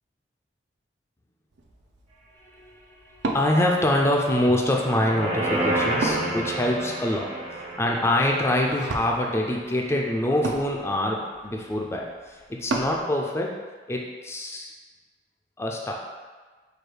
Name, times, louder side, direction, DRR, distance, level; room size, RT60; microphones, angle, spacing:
Wood, 1.5-13.0, right 2 dB, 70° right, 0.5 m, -37 dB
voice 1, 3.1-13.5 13.9-14.7 15.6-16.0, left 1 dB, 15° left, 0 dB, 0.4 m, -25 dB
sound 1, 4.6-10.0 10.4-10.5, right 1 dB, 30° right, 0.7 m, -30 dB
4.6 x 2.4 x 4.8 m, 1.4 s
head